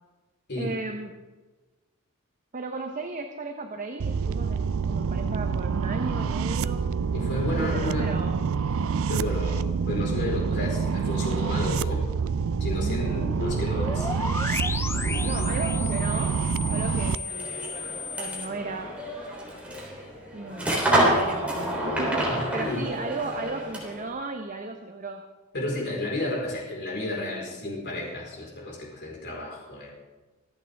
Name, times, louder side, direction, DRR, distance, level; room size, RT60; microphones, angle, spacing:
voice 1, 0.6-1.1 2.5-6.9 7.6-8.4 15.2-16.4 16.7-17.5 18.2-18.9 20.3-25.2, right 2 dB, 40° right, 4 dB, 1.0 m, -35 dB
sound 1, 4.0-17.2, right 5 dB, 65° right, 0.4 m, -27 dB
voice 2, 7.1-8.1 9.1-12.1 12.6-14.1 14.9-15.5 22.3-22.9 25.5-29.9, left 1 dB, 55° left, -2 dB, 4.5 m, -32 dB
sound 2, 12.4-18.5, left 3 dB, 10° left, 0.4 m, -34 dB
sound 3, 17.3-24.1, right 1 dB, 5° right, 3.5 m, -28 dB
25.5 x 8.8 x 3.6 m, 1.3 s
head